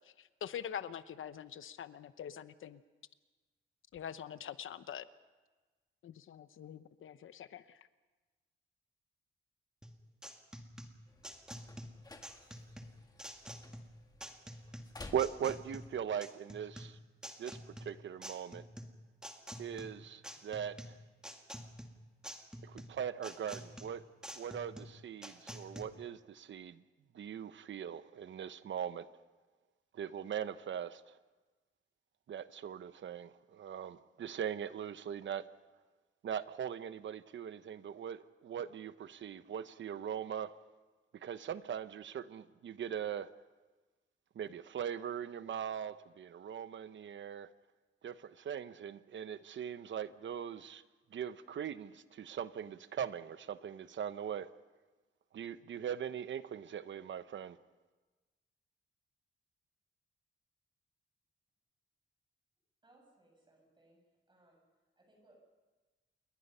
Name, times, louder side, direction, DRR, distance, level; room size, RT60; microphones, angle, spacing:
voice 1, 0.0-2.8 3.9-5.1 6.0-7.8, left 9 dB, 75° left, 13 dB, 1.0 m, -45 dB
sound 1, 9.8-25.8, equal, 5° right, 1.9 m, -49 dB
sound 2, 11.1-16.0, left 2 dB, 20° left, 2.0 m, -54 dB
voice 2, 15.1-17.0 17.4-18.6 19.6-21.0 22.6-24.0 24.3-26.8 27.1-29.1 29.9-31.2 32.3-35.5 36.2-40.5 41.1-43.3 44.3-47.5 48.0-50.8 51.1-54.5 55.3-57.6, right 8 dB, 65° right, 12 dB, 1.0 m, -40 dB
voice 3, 62.8-64.0 64.3-64.6 65.0-65.4, right 2 dB, 20° right, 1 dB, 7.7 m, -66 dB
28.5 x 22.5 x 5.6 m, 1.3 s
wide cardioid pair, 160°, 21 cm